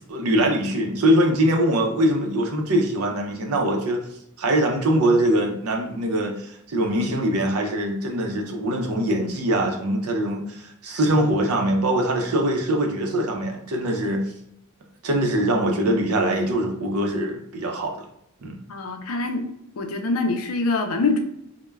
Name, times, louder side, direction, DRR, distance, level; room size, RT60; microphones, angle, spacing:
voice 1, 0.0-4.0 4.4-14.2 15.0-18.1 18.4-18.6, right 1 dB, 85° right, 3 dB, 0.5 m, -22 dB
voice 2, 18.7-19.4 19.8-21.2, left 3 dB, 75° left, 5 dB, 0.4 m, -24 dB
2.2 x 2.1 x 3.1 m, 0.76 s
head